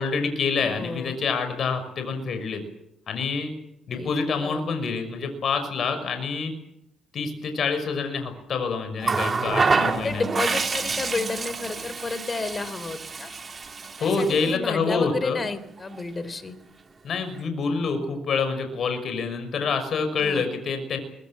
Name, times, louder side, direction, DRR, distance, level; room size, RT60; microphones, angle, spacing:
voice 1, 0.0-2.6 3.1-3.5 3.9-6.5 7.1-10.3 14.0-15.5 17.0-21.0, left 5 dB, 60° left, 8 dB, 6.1 m, -27 dB
voice 2, 0.6-1.2 3.9-4.6 9.8-13.3 14.0-16.5 20.2-20.5, left 3 dB, 30° left, 14 dB, 3.2 m, -31 dB
Water tap faucet, 9.0-14.6 15.8-16.0, right 4 dB, 35° right, 2.7 m, -27 dB
24.0 x 23.5 x 7.5 m, 0.84 s
cardioid pair, 90°, 0 cm